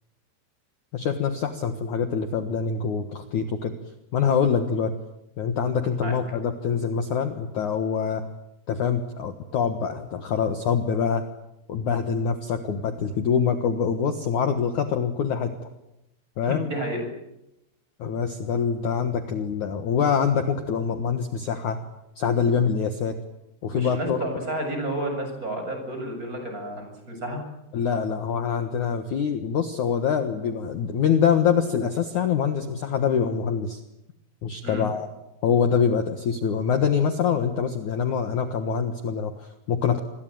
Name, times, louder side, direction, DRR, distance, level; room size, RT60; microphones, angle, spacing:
voice 1, 0.9-3.7 4.1-4.9 5.4-8.2 8.7-11.2 11.7-15.5 16.4-16.7 18.0-21.8 22.2-23.1 23.6-24.2 27.7-33.8 34.4-35.1 35.4-40.0, left 7 dB, 60° left, 8 dB, 2.2 m, -25 dB
voice 2, 16.4-17.0 23.7-27.4 34.6-34.9, right 1 dB, 15° right, 4 dB, 7.4 m, -31 dB
27.5 x 22.0 x 9.3 m, 0.88 s
omnidirectional pair, 5.4 m